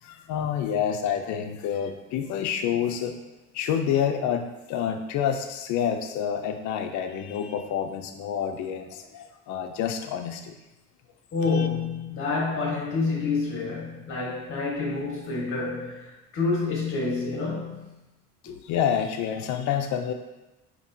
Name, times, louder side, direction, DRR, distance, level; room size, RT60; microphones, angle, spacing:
voice 1, 0.0-3.2 3.5-10.5 11.4-11.7 18.6-20.1, left 8 dB, 65° left, 6 dB, 0.5 m, -28 dB
voice 2, 11.3-17.9 18.5-18.6, left 4 dB, 45° left, -4 dB, 1.4 m, -28 dB
5.2 x 2.8 x 2.7 m, 1.0 s
cardioid pair, 140°, 31 cm